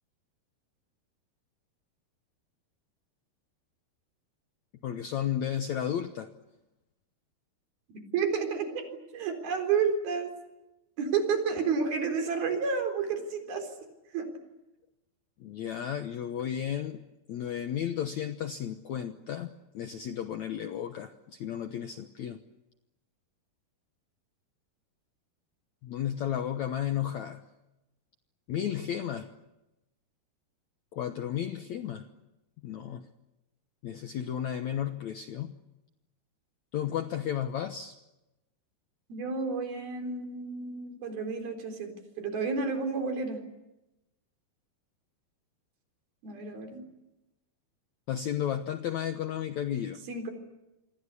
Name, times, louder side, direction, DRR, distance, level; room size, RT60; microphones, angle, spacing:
voice 1, 4.8-6.3 15.4-17.0 17.3-22.4 25.8-27.4 28.5-29.3 30.9-32.1 32.6-33.0 33.8-35.5 36.7-37.9 48.1-50.0, left 10 dB, 70° left, 8 dB, 1.8 m, -33 dB
voice 2, 8.1-8.9 9.1-10.3 11.0-13.7 14.1-14.3 39.1-43.4 46.2-46.9 50.1-50.3, right 5 dB, 65° right, 5 dB, 5.8 m, -30 dB
28.0 x 23.5 x 8.4 m, 0.97 s
omnidirectional pair, 4.6 m